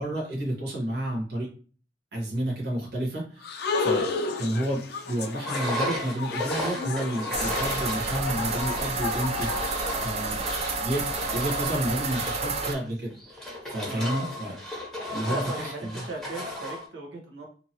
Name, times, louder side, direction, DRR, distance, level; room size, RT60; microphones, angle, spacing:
voice 1, 0.0-1.5 2.1-4.1 4.4-10.4 10.7-11.0 11.3-14.5 15.1-15.9, right 1 dB, 60° right, -3 dB, 1.1 m, -31 dB
sound 1, 3.4-10.3, left 4 dB, 60° left, 0.4 m, -32 dB
Engine, 5.4-16.8, left 1 dB, 5° left, 1.2 m, -35 dB
sound 2, 7.3-12.7, right 4 dB, 35° right, 0.3 m, -30 dB
voice 2, 13.9-14.3 15.1-17.5, right 2 dB, 90° right, 0 dB, 0.9 m, -37 dB
2.8 x 2.7 x 2.7 m, 0.41 s
head